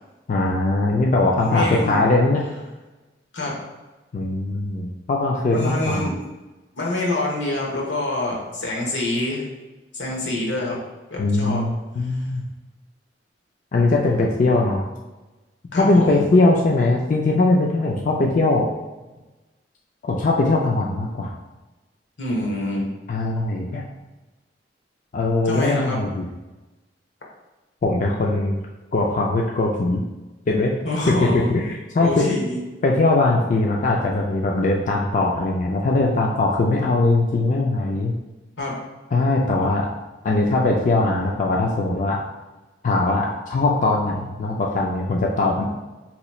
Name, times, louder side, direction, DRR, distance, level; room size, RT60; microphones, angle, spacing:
voice 1, 0.3-2.4 4.1-6.1 11.2-12.4 13.7-14.8 15.8-18.7 20.0-21.3 23.1-23.8 25.1-26.3 27.8-28.6 28.9-30.0 30.5-30.8 31.3-32.3 32.8-38.1 39.1-39.9 40.2-42.2 42.8-45.6, left 2 dB, 45° left, -1 dB, 0.4 m, -20 dB
voice 2, 1.3-2.0 3.3-3.5 5.5-6.1 6.8-9.4 9.9-10.8 11.1-11.6 12.1-12.2 15.7-16.2 22.2-22.9 25.4-26.0 30.8-31.6 32.0-32.6 38.6-38.7, left 2 dB, 85° left, -2 dB, 1.0 m, -26 dB
2.9 x 2.3 x 4.2 m, 1.1 s
head